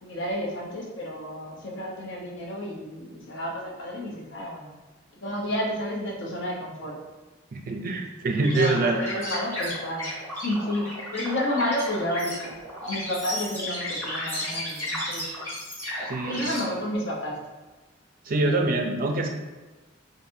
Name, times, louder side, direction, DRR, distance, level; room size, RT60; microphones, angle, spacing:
voice 1, 0.0-4.7 5.2-7.0 8.5-10.1 10.4-12.5 12.8-15.3 16.2-17.4, left 1 dB, 60° left, -2 dB, 0.8 m, -31 dB
voice 2, 7.5-9.0 16.0-16.5 18.3-19.3, right 2 dB, 40° right, 3 dB, 0.4 m, -25 dB
sound 1, 8.4-16.6, left 1 dB, 10° left, 1.3 m, -34 dB
4.7 x 2.6 x 2.7 m, 1.2 s
head